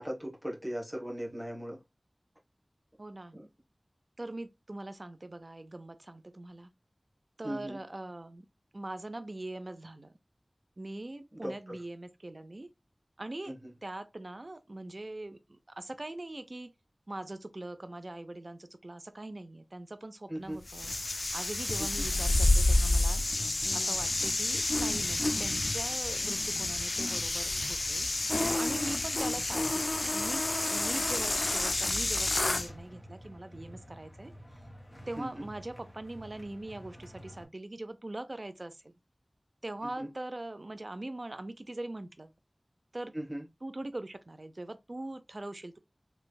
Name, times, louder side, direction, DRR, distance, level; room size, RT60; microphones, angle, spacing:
voice 1, 0.0-1.8 3.3-3.5 7.4-7.8 11.3-11.8 13.5-13.7 20.3-20.6 21.8-21.9 35.2-35.3 39.8-40.1 43.1-43.5, equal, 10° right, 1.3 m, -38 dB
voice 2, 3.0-3.3 4.2-6.7 7.4-8.5 8.7-10.1 10.8-12.7 13.2-13.5 13.8-16.7 17.1-20.9 21.3-23.2 23.7-28.1 28.6-34.3 35.1-38.9 39.6-42.3 42.9-43.1 43.6-45.8, right 2 dB, 50° right, 0.5 m, -42 dB
sound 1, 20.7-32.7, left 2 dB, 60° left, 0.3 m, -29 dB
sound 2, 28.7-37.4, equal, 30° left, 1.4 m, -50 dB
3.3 x 3.0 x 2.3 m
wide cardioid pair, 55°, 0 cm